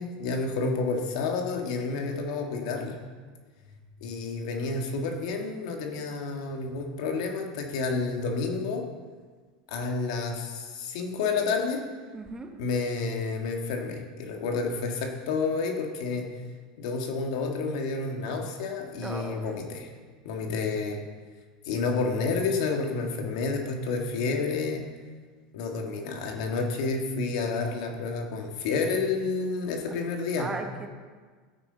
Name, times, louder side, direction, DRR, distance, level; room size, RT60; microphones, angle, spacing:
voice 1, 0.0-3.0 4.0-8.8 9.7-11.8 12.6-16.3 16.8-19.9 20.2-21.0 21.6-24.8 25.5-30.5, left 4 dB, 75° left, 3 dB, 1.7 m, -30 dB
voice 2, 12.1-12.5 18.9-19.4 30.4-30.9, right 3 dB, 20° right, 5 dB, 1.1 m, -36 dB
13.0 x 9.2 x 3.9 m, 1.5 s
supercardioid pair, 120°, 4 cm